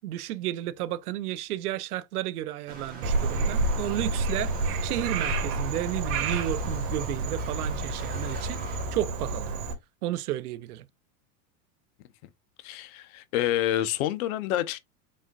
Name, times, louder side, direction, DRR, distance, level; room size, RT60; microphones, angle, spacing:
voice 1, 0.0-4.5 4.8-9.5 10.0-10.8, right 14 dB, 85° right, 0.7 m, -32 dB
sound 1, 2.7-9.6, right 3 dB, 20° right, 2.3 m, -44 dB
Frog, 3.0-9.7, right 2 dB, 65° right, 1.6 m, -29 dB
voice 2, 12.6-14.8, left 12 dB, 70° left, 0.8 m, -28 dB
4.2 x 3.8 x 2.4 m
supercardioid pair, 120°, 44 cm